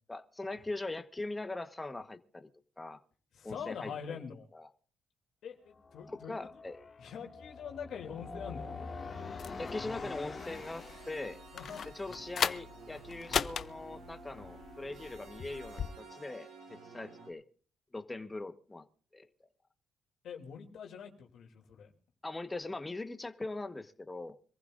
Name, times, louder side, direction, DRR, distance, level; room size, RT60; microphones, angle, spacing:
voice 1, 0.1-2.5 2.8-3.0 3.4-4.2 4.5-4.7 6.1-6.8 9.6-11.4 11.9-16.5 16.9-17.4 17.9-18.8 19.1-19.3 22.2-24.4, left 2 dB, 15° left, 1.3 m, -41 dB
voice 2, 3.3-4.5 5.4-6.5 7.0-8.7 11.5-11.8 20.2-21.9, left 7 dB, 70° left, 3.0 m, -44 dB
sound 1, 5.7-11.2, left 4 dB, 40° left, 2.2 m, -45 dB
sound 2, 8.2-17.3, right 3 dB, 75° right, 3.1 m, -52 dB
sound 3, 9.4-15.9, left 7 dB, 55° left, 0.7 m, -39 dB
26.0 x 15.0 x 2.6 m
cardioid pair, 90°, 0 cm